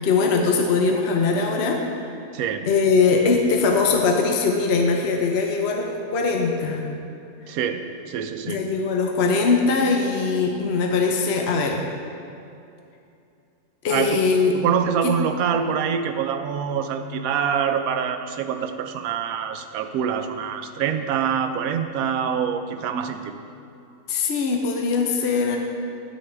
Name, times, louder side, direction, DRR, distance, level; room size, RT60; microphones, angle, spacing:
voice 1, 0.0-2.1 2.7-6.9 8.5-11.8 13.8-14.5 15.0-15.1 24.1-25.6, left 4 dB, 55° left, 1 dB, 0.9 m, -21 dB
voice 2, 2.3-2.7 7.5-8.6 13.9-14.2 14.5-23.3, right 7 dB, 80° right, 7 dB, 1.0 m, -25 dB
9.6 x 8.8 x 3.3 m, 2.6 s
omnidirectional pair, 1.5 m